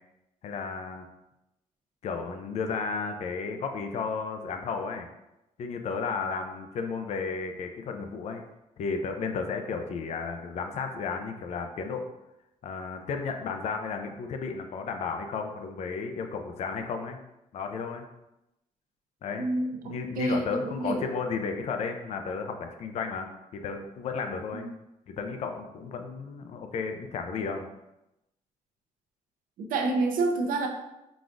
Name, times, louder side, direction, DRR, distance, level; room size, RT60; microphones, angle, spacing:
voice 1, 0.4-1.1 2.0-5.1 5.6-8.4 8.8-12.0 12.6-17.2 17.5-18.1 19.2-19.5 19.8-24.7 25.2-27.7, left 5 dB, 50° left, 5 dB, 0.4 m, -33 dB
voice 2, 19.4-21.0 24.5-24.7 29.6-30.7, right 2 dB, 90° right, 4 dB, 0.6 m, -28 dB
4.5 x 3.9 x 2.5 m, 0.91 s
cardioid pair, 160°, 14 cm